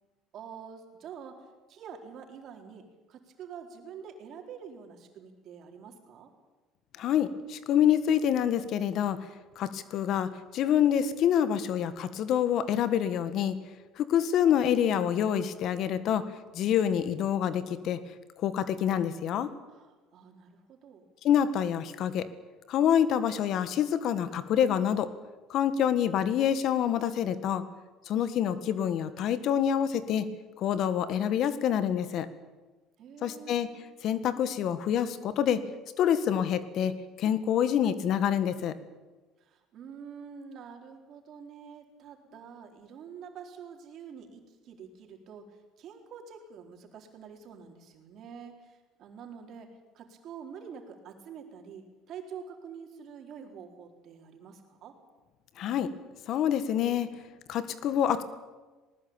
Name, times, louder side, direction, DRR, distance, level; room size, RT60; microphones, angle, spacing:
voice 1, 0.3-6.3 19.7-21.0 33.0-33.7 39.4-55.0, right 7 dB, 55° right, 4 dB, 4.2 m, -47 dB
voice 2, 7.0-9.2 9.5-13.6 14.0-16.2 16.5-18.0 18.4-19.5 21.2-22.3 22.7-25.1 25.5-27.6 28.0-30.2 30.6-32.3 33.2-33.7 34.0-35.6 36.0-36.9 37.2-38.8 55.6-55.9 56.3-57.1 57.5-58.2, left 9 dB, 60° left, 13 dB, 1.6 m, -26 dB
19.5 x 19.5 x 8.9 m, 1.2 s
supercardioid pair, 100°, 0 cm